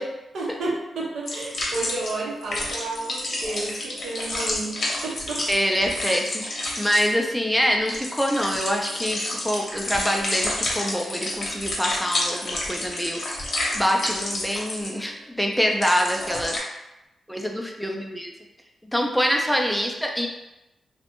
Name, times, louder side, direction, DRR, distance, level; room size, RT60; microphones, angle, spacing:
voice 1, 0.0-5.5, right 2 dB, 80° right, -3 dB, 0.6 m, -31 dB
sound 1, 1.3-2.2 2.4-16.6, left 1 dB, 60° left, 0.7 m, -30 dB
voice 2, 5.5-13.2 13.7-16.6 17.3-18.3 18.9-20.3, equal, ahead, 1 dB, 0.4 m, -25 dB
2.5 x 2.1 x 2.8 m, 0.92 s
cardioid pair, 70°, 0 cm